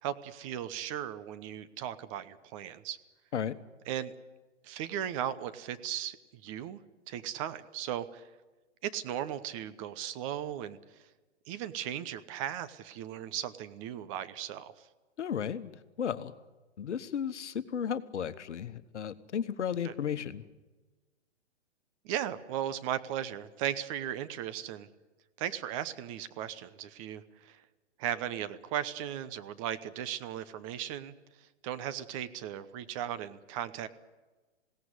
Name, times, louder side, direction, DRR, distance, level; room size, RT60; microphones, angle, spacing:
voice 1, 0.0-3.0 3.9-4.1 4.6-6.8 7.1-8.2 8.8-10.8 11.5-14.7 19.8-19.9 22.0-24.9 25.4-27.6 28.0-31.1 31.6-33.9, right 11 dB, 30° right, 13 dB, 0.9 m, -37 dB
voice 2, 15.2-15.7 16.0-16.3 16.8-20.4, left 8 dB, 75° left, 12 dB, 1.3 m, -34 dB
21.0 x 17.5 x 9.7 m, 1.2 s
hypercardioid pair, 140°, 36 cm